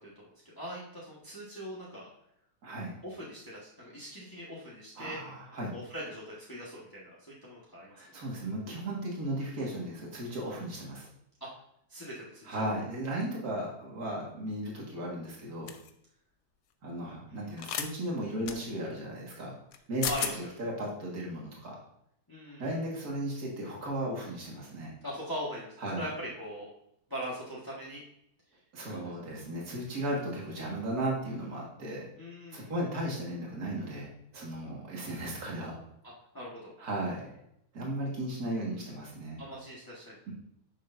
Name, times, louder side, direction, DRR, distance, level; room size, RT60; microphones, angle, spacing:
voice 1, 0.0-2.1 3.0-5.2 5.7-7.9 11.4-11.5 11.9-12.5 17.3-17.6 20.0-20.3 22.3-22.7 25.0-26.7 27.1-28.0 28.9-29.1 32.2-32.7 36.0-36.7 39.4-40.2, equal, 15° left, -7 dB, 1.6 m, -41 dB
voice 2, 2.6-2.9 5.0-5.7 7.9-11.1 12.5-15.7 16.8-19.5 19.9-20.1 20.6-21.8 22.6-24.9 25.8-26.1 28.7-32.1 32.5-34.1 34.3-35.8 36.8-37.3 37.7-39.4 40.3-40.4, right 1 dB, 70° right, -3 dB, 2.4 m, -35 dB
sound 1, 15.7-15.9 17.6-17.9 18.5-18.6 19.7-19.8 20.0-20.3, left 8 dB, 85° left, 1.3 m, -33 dB
10.5 x 6.6 x 2.7 m, 0.74 s
omnidirectional pair, 1.7 m